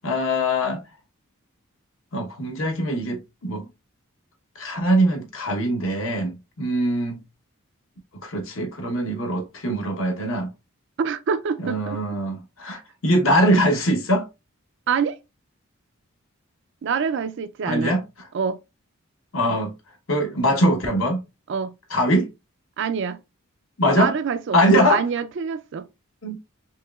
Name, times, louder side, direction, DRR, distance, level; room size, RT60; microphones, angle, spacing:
voice 1, 0.0-0.8 2.1-3.7 4.6-7.2 8.2-10.5 11.6-14.2 17.7-18.0 19.3-19.7 20.1-21.2 21.9-22.3 23.8-24.1 24.5-25.0 26.2-26.4, equal, 70° left, 1.0 m, -22 dB
voice 2, 11.0-12.0 12.7-12.8 14.9-15.2 16.8-18.0 18.3-18.6 21.5-21.7 22.8-23.2 23.9-25.9, right 6 dB, 60° right, 0.4 m, -26 dB
4.6 x 3.1 x 2.3 m
head